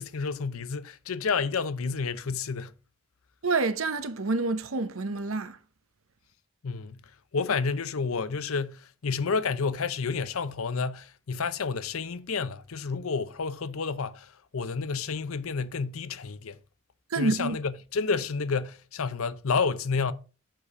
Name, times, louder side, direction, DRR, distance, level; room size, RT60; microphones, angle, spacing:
voice 1, 0.0-2.8 6.6-7.0 7.3-16.6 17.1-20.1, left 5 dB, 85° left, 0.6 m, -30 dB
voice 2, 3.4-5.6 17.1-17.6, right 3 dB, 80° right, 0.9 m, -28 dB
7.6 x 4.9 x 4.9 m
head